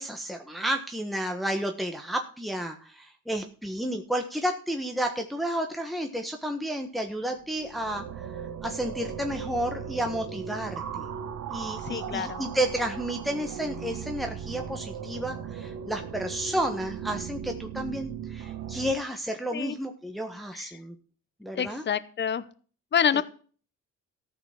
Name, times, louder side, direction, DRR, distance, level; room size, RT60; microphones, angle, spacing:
voice 1, 0.0-8.0 8.6-11.1 11.5-20.9 21.4-21.8 23.1-23.2, right 1 dB, ahead, 4 dB, 1.4 m, -31 dB
sound 1, 7.3-18.9, right 8 dB, 80° right, 1.3 m, -37 dB
voice 2, 11.8-12.5 19.5-19.8 20.5-20.8 21.5-22.4 22.9-23.2, left 8 dB, 35° left, 15 dB, 0.9 m, -27 dB
14.0 x 6.1 x 6.1 m, 0.41 s
cardioid pair, 90°, 30 cm